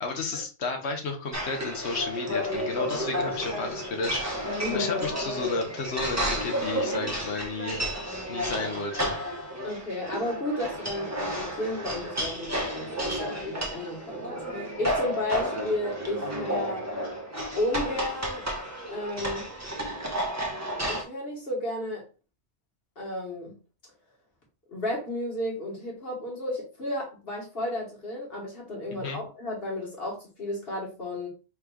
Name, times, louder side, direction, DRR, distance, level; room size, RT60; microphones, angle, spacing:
voice 1, 0.0-4.4 4.7-7.8 8.3-9.2 28.9-29.2, left 4 dB, 70° left, 4 dB, 1.2 m, -32 dB
sound 1, 1.3-21.0, equal, 15° right, 0.8 m, -31 dB
voice 2, 4.6-4.9 9.6-16.9 17.5-18.4 18.9-19.5 20.9-22.0 23.0-23.5 24.7-31.3, left 1 dB, 55° left, -2 dB, 1.6 m, -33 dB
4.7 x 3.6 x 2.3 m, 0.33 s
omnidirectional pair, 1.2 m